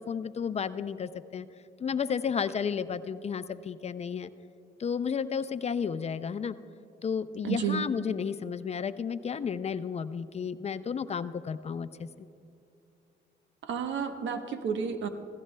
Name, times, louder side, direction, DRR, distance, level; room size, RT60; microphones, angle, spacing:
voice 1, 0.0-1.5 1.8-4.3 4.8-6.6 7.0-12.3, left 6 dB, 35° left, 14 dB, 0.4 m, -32 dB
voice 2, 7.4-7.9 13.6-15.1, right 7 dB, 70° right, 8 dB, 0.9 m, -31 dB
16.5 x 15.0 x 2.2 m, 2.6 s
cardioid pair, 90°, 20 cm